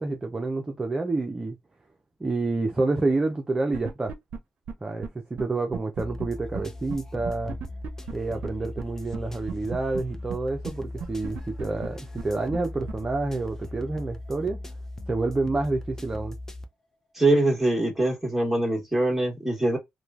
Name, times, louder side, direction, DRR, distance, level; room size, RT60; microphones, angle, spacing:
voice 1, 0.0-1.6 2.2-4.1 4.8-7.6 8.1-14.6 15.1-16.4, right 3 dB, 25° right, 0.6 m, -28 dB
sound 1, 3.7-4.4 4.7-4.8 5.0-5.1 5.4-5.5 5.7-6.3 6.5-6.6 6.9-7.0 7.2-8.1 8.4-8.5 8.8-8.9 9.1-9.2 9.5-10.0 10.3-10.4 10.6-10.7 11.0-11.9 12.2-12.3 12.5-12.6 12.9-13.0, right 6 dB, 65° right, 0.5 m, -34 dB
sound 2, 6.0-16.7, left 1 dB, 15° left, 0.6 m, -38 dB
voice 2, 17.1-19.8, right 2 dB, 5° right, 1.5 m, -23 dB
2.9 x 2.3 x 2.4 m
supercardioid pair, 70°, 3 cm